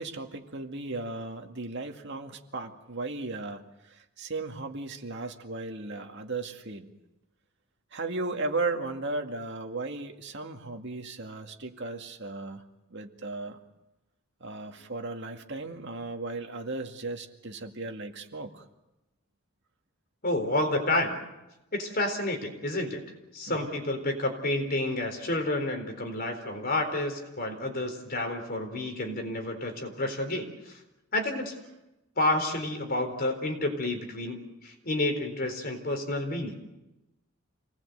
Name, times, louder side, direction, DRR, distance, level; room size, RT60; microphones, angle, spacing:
voice 1, 0.0-3.6 4.2-6.9 7.9-12.6 12.9-13.6 14.4-18.6 23.5-23.8, right 3 dB, 55° right, 4 dB, 2.1 m, -36 dB
voice 2, 20.2-21.2 21.7-23.0 23.3-30.8 31.1-31.5 32.2-36.6, left 1 dB, 40° left, 4 dB, 4.1 m, -30 dB
27.5 x 19.5 x 8.1 m, 0.97 s
head